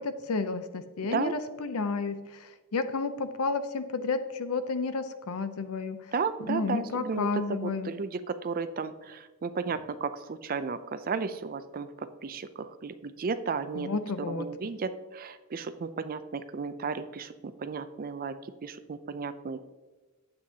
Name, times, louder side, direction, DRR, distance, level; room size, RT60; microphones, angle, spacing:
voice 1, 0.0-6.0 6.4-7.9 13.8-14.5, left 4 dB, 85° left, 11 dB, 0.6 m, -31 dB
voice 2, 6.1-13.9 14.3-18.4 18.6-19.6, right 5 dB, 40° right, 12 dB, 0.4 m, -34 dB
9.8 x 7.7 x 2.8 m, 1.2 s
head